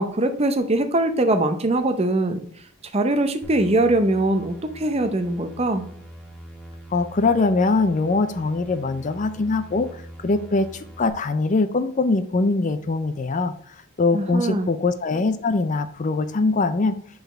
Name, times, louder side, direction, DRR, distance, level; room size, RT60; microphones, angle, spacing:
voice 1, 0.0-2.4 2.9-5.9 14.1-14.7, right 1 dB, 25° right, 8 dB, 0.6 m, -22 dB
sound 1, 3.4-11.1, equal, 5° left, 1.2 m, -43 dB
voice 2, 6.9-13.5 14.0-17.0, left 3 dB, 35° left, 10 dB, 0.4 m, -22 dB
7.0 x 4.0 x 4.1 m, 0.62 s
head